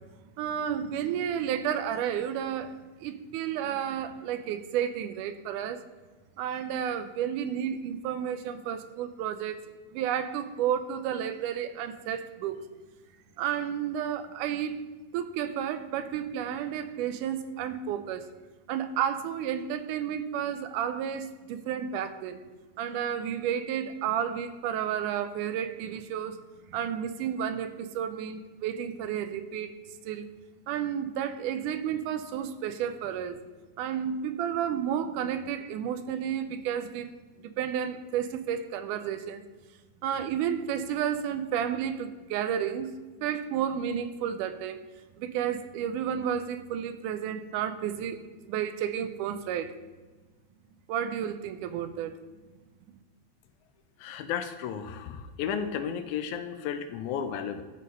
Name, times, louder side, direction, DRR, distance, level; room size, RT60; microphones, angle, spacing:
voice 1, 0.4-2.7 3.0-5.8 6.4-9.6 9.9-12.6 13.4-14.8 15.1-18.2 18.7-22.4 22.8-26.4 26.7-29.7 30.1-30.3 30.7-33.4 33.8-37.1 37.6-39.4 40.0-42.9 43.2-44.8 45.2-48.2 48.5-49.7 50.9-52.1, right 9 dB, 90° right, 10 dB, 2.1 m, -31 dB
voice 2, 54.0-57.6, left 8 dB, 80° left, 8 dB, 2.0 m, -33 dB
12.5 x 4.2 x 5.2 m, 1.3 s
omnidirectional pair, 3.6 m